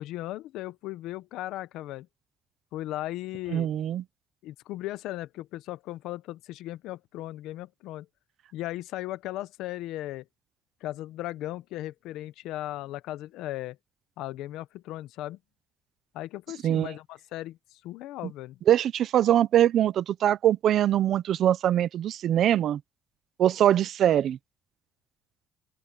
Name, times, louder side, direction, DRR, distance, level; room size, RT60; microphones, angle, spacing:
voice 1, 0.0-2.1 2.7-3.7 4.4-8.1 8.5-10.2 10.8-13.8 14.2-15.4 16.1-18.6, left 15 dB, 85° left, 0.9 m, -37 dB
voice 2, 3.5-4.0 16.6-16.9 18.7-22.8 23.4-24.4, right 11 dB, 60° right, 0.7 m, -23 dB
open air
cardioid pair, 125°, 0 cm